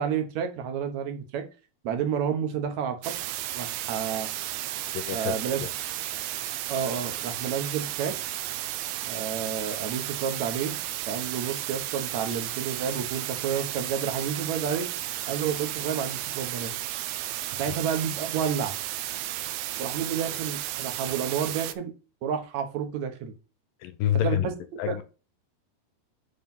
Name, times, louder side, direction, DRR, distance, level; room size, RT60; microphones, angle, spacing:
voice 1, 0.0-1.4 1.8-3.1 3.5-4.3 5.1-5.6 6.7-8.1 9.1-10.8 11.1-14.9 15.3-16.7 17.5-18.8 19.8-21.9 22.2-23.3 24.1-24.5 24.9-25.0, right 7 dB, 60° right, 2.1 m, -30 dB
sound 1, 3.0-21.7, right 14 dB, 85° right, 2.5 m, -33 dB
voice 2, 4.9-5.7 17.7-17.8 23.8-24.5 24.8-25.0, left 11 dB, 75° left, 2.2 m, -28 dB
9.6 x 3.4 x 5.5 m
omnidirectional pair, 4.4 m